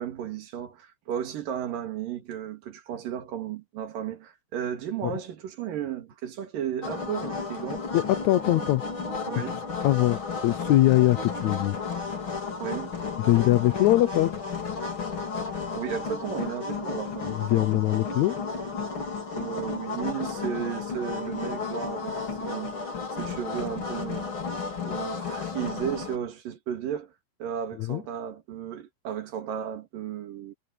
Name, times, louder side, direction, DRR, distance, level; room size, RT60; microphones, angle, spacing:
voice 1, 0.0-7.9 8.4-8.8 9.3-9.6 12.6-12.9 15.7-17.3 19.3-22.8 23.2-24.3 24.8-27.1 27.4-30.5, right 9 dB, 80° right, 3.7 m, -34 dB
sound 1, 6.8-26.2, left 4 dB, 35° left, 4.7 m, -33 dB
voice 2, 7.9-8.8 9.4-11.8 13.2-14.3 17.2-18.4 27.8-28.0, left 16 dB, 75° left, 1.8 m, -23 dB
omnidirectional pair, 3.9 m